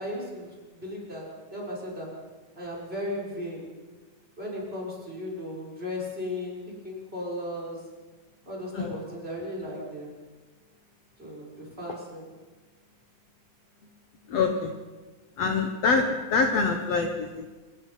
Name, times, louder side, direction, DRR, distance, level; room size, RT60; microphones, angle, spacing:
voice 1, 0.0-2.3 2.6-3.7 4.4-7.9 8.4-10.1 11.2-12.3, left 1 dB, 15° right, -2 dB, 6.6 m, -36 dB
voice 2, 14.3-14.8 15.4-17.5, left 4 dB, 55° left, 4 dB, 2.2 m, -25 dB
27.0 x 21.5 x 5.9 m, 1.3 s
omnidirectional pair, 4.0 m